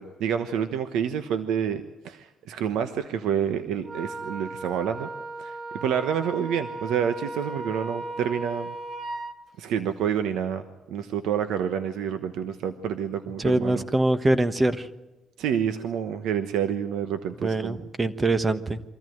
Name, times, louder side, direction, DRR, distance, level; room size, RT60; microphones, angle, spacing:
voice 1, 0.0-5.1 5.4-8.7 9.6-13.8 15.4-17.8, right 8 dB, 90° right, 9 dB, 1.1 m, -28 dB
Wind instrument woodwind instrument, 3.8-9.4, right 2 dB, 60° right, 1.6 m, -36 dB
voice 2, 13.4-14.9 17.4-18.8, right 2 dB, 25° right, 12 dB, 1.3 m, -23 dB
24.0 x 14.5 x 9.3 m, 1.0 s
cardioid pair, 90°, 0 cm